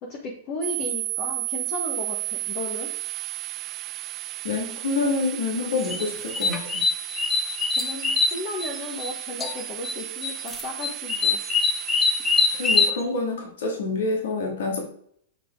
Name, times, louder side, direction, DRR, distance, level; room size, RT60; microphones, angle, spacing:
voice 1, 0.0-2.9 7.8-11.4, left 2 dB, 40° left, -1 dB, 1.5 m, -35 dB
sound 1, 0.6-12.9, right 15 dB, 30° right, 0.5 m, -34 dB
voice 2, 4.4-6.8 12.6-14.8, left 3 dB, 80° left, 0 dB, 2.6 m, -27 dB
sound 2, 5.8-9.1 9.4-10.0 10.2-13.0, left 4 dB, 15° left, 0.9 m, -23 dB
7.3 x 4.9 x 4.7 m, 0.63 s
hypercardioid pair, 140°, 0 cm